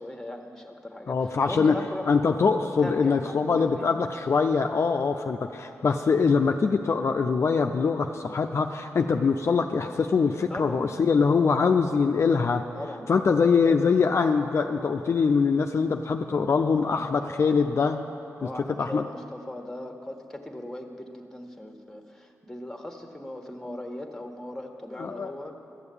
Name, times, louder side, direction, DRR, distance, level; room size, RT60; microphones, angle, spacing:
voice 1, 0.0-2.1 2.8-3.9 10.5-11.0 12.7-13.3 18.4-25.6, left 1 dB, 5° left, 3 dB, 1.4 m, -39 dB
voice 2, 1.1-1.7 2.1-12.6 13.1-18.1 18.8-19.0 25.0-25.3, left 5 dB, 55° left, 5 dB, 0.5 m, -23 dB
13.0 x 7.0 x 8.4 m, 2.9 s
cardioid pair, 60°, 6 cm